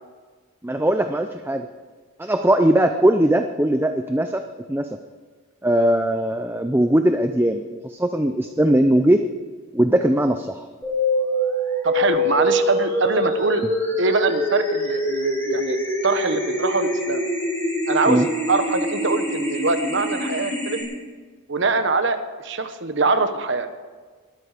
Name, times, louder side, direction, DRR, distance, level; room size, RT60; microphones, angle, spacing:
voice 1, 0.6-1.7 2.2-4.4 4.7-5.0 5.6-9.3 9.7-10.7 18.1-18.3, right 1 dB, 10° right, 7 dB, 0.5 m, -20 dB
sound 1, 10.8-20.8, equal, 10° left, 5.1 m, -24 dB
voice 2, 11.8-13.6 14.0-17.2 17.9-20.8 21.5-23.7, right 3 dB, 55° right, 9 dB, 1.2 m, -23 dB
21.0 x 13.0 x 5.0 m, 1.5 s
head